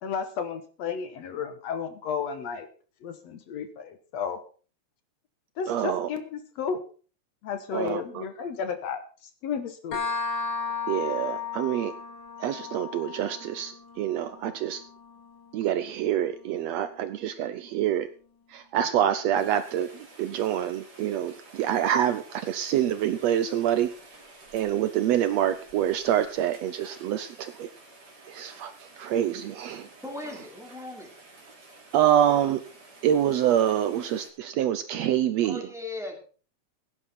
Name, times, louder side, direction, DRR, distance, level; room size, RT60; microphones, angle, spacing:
voice 1, 0.0-2.7 3.0-4.4 5.6-6.8 7.4-10.0, left 6 dB, 65° left, 9 dB, 2.3 m, -33 dB
voice 2, 5.7-6.1 7.7-8.2 10.9-11.9 12.4-14.8 15.5-18.1 18.5-23.9 24.5-27.7 28.3-29.9 31.9-32.6 33.0-35.6, right 10 dB, 75° right, 12 dB, 1.7 m, -26 dB
sound 1, 9.9-17.3, left 5 dB, 40° left, 3.1 m, -36 dB
Rain, 19.3-34.3, right 2 dB, 35° right, 3.5 m, -51 dB
voice 3, 30.0-31.2 35.4-36.2, left 2 dB, ahead, 1 dB, 2.9 m, -38 dB
16.5 x 10.0 x 4.3 m, 0.40 s
omnidirectional pair, 3.4 m